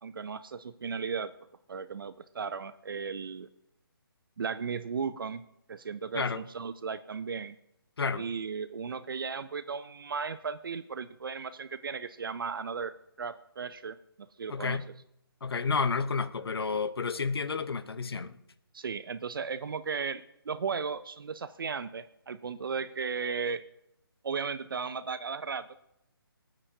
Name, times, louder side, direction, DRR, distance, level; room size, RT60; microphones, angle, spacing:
voice 1, 0.0-1.3 1.7-3.5 4.4-5.4 5.7-7.6 8.2-14.0 14.4-14.8 18.7-23.6 24.2-25.7, right 5 dB, 65° right, 0.5 m, -35 dB
voice 2, 14.5-14.8 15.4-18.4, left 5 dB, 80° left, 0.8 m, -30 dB
19.0 x 9.0 x 2.8 m
hypercardioid pair, 165°, 13 cm